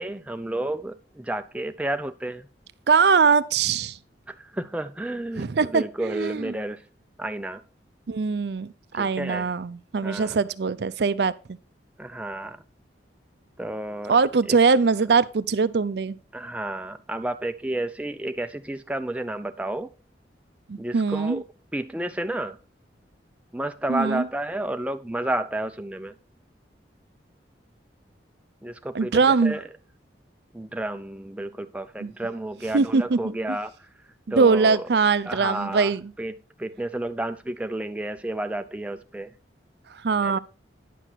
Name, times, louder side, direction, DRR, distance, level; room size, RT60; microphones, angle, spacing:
voice 1, 0.0-2.5 4.3-6.8 7.2-7.6 8.9-9.5 10.0-10.4 12.0-12.6 13.6-14.2 14.5-14.6 16.3-19.9 20.8-21.4 21.7-22.6 23.5-26.1 28.6-29.6 30.5-33.7 34.3-34.9 35.3-35.9 36.2-39.3 40.2-40.4, right 1 dB, 5° right, 0.5 m, -31 dB
voice 2, 2.9-4.0 5.4-6.5 8.1-8.7 8.9-11.6 14.1-16.2 20.7-21.4 23.9-24.3 28.9-29.6 32.0-32.1 32.7-33.6 34.3-36.0 40.0-40.4, right 5 dB, 65° right, 0.5 m, -22 dB
10.0 x 5.8 x 4.6 m
head